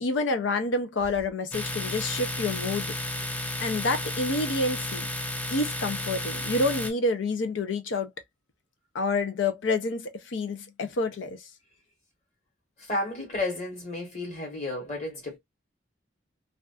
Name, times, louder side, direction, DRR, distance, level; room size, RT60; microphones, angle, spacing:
voice 1, 0.0-2.9 3.6-5.1 5.5-8.1 8.9-11.4, left 2 dB, 80° left, 0.5 m, -28 dB
Domestic sounds home sounds, 1.5-6.9, left 1 dB, 10° left, 0.3 m, -32 dB
voice 2, 12.8-15.4, left 2 dB, 35° left, 1.2 m, -32 dB
2.4 x 2.3 x 2.3 m
head